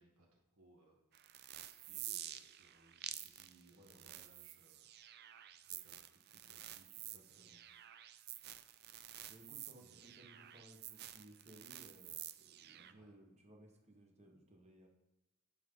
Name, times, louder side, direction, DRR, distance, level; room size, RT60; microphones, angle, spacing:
voice 1, 0.0-1.3 1.7-5.3 5.6-7.5 9.8-10.1 12.7-13.1, right 2 dB, 75° right, -2 dB, 1.4 m, -69 dB
sound 1, 1.1-12.9, right 12 dB, 45° right, 0.4 m, -50 dB
voice 2, 3.7-4.3 7.0-7.6 8.3-8.4 9.3-14.9, right 1 dB, 30° right, 1 dB, 1.4 m, -61 dB
11.5 x 3.8 x 3.9 m, 1.0 s
head